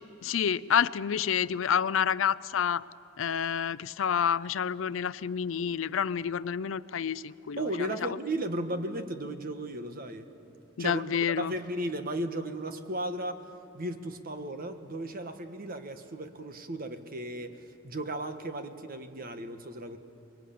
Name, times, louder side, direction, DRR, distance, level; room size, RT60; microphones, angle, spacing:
voice 1, 0.2-2.8 3.2-8.2 10.8-11.5, left 8 dB, 75° left, 17 dB, 0.5 m, -29 dB
voice 2, 7.6-10.3 10.8-11.0 11.4-13.5 13.7-20.0, right 1 dB, 50° right, 8 dB, 1.4 m, -35 dB
24.5 x 21.5 x 8.6 m, 2.7 s
head